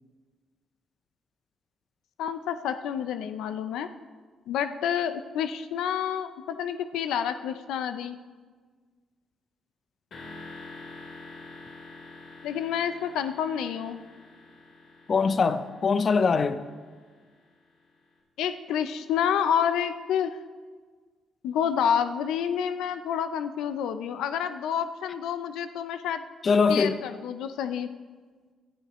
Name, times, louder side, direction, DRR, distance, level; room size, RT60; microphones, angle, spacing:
voice 1, 2.2-3.9 4.5-8.2 12.4-14.0 18.4-20.4 21.4-26.2 26.7-27.9, left 8 dB, 85° left, 0.5 m, -29 dB
sound 1, 10.1-17.9, left 3 dB, 60° left, 3.7 m, -47 dB
voice 2, 15.1-16.7 26.4-27.0, left 5 dB, 45° left, 0.6 m, -23 dB
18.0 x 11.5 x 3.1 m
cardioid pair, 90°, 0 cm